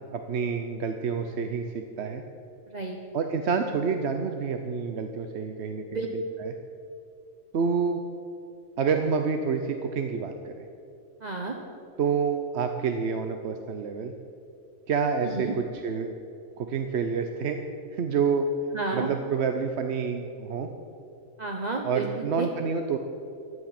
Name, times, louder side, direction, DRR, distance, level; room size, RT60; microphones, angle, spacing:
voice 1, 0.1-2.2 3.1-6.5 7.5-8.0 8.8-10.5 12.0-14.1 14.9-16.2 16.6-17.6 17.9-18.5 18.9-20.7 21.8-23.0, right 5 dB, 55° right, 6 dB, 0.9 m, -28 dB
voice 2, 2.7-3.0 5.9-6.1 11.2-11.5 15.2-15.5 18.7-19.1 21.4-22.5, right 3 dB, 35° right, 1 dB, 1.1 m, -31 dB
15.5 x 10.5 x 5.9 m, 2.8 s
omnidirectional pair, 1.5 m